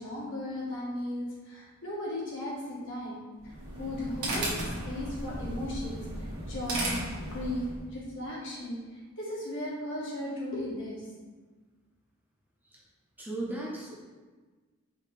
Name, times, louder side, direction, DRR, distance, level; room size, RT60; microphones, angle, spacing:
voice 1, 0.0-4.5 4.8-6.9 7.3-11.2, left 1 dB, 60° left, -5 dB, 1.2 m, -36 dB
sound 1, 3.4-7.9, right 1 dB, 85° right, 1.2 m, -35 dB
voice 2, 13.2-13.9, right 1 dB, 10° right, -5 dB, 0.7 m, -36 dB
5.0 x 2.8 x 3.3 m, 1.4 s
head